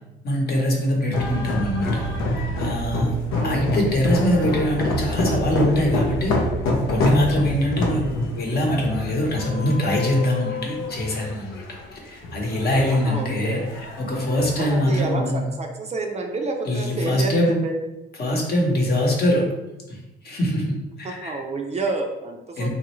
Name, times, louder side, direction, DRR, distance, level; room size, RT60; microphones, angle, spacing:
voice 1, 0.2-2.0 2.6-3.1 3.4-6.3 6.9-13.6 14.0-15.4 16.7-17.6 18.2-19.4 19.9-20.0 20.2-21.4 22.6-22.7, left 1 dB, 50° left, 0 dB, 0.9 m, -23 dB
sound 1, 1.1-15.1, left 1 dB, 90° left, 0.6 m, -27 dB
voice 2, 3.3-3.8 12.9-13.7 14.6-17.8 21.0-22.7, right 3 dB, 35° right, 3 dB, 0.4 m, -29 dB
3.0 x 2.4 x 3.0 m, 0.99 s
cardioid pair, 90°, 20 cm